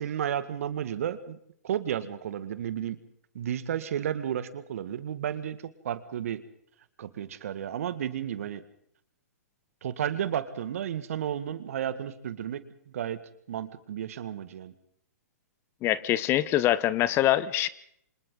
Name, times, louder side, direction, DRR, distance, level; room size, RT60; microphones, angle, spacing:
voice 1, 0.0-1.4 1.6-3.0 3.3-5.6 5.8-6.4 7.0-8.6 9.8-12.6 12.9-13.2 13.5-14.7, right 10 dB, 60° right, 12 dB, 2.0 m, -32 dB
voice 2, 15.8-17.7, left 14 dB, 30° left, 17 dB, 1.0 m, -24 dB
28.5 x 26.0 x 3.9 m, 0.68 s
hypercardioid pair, 120°, 9 cm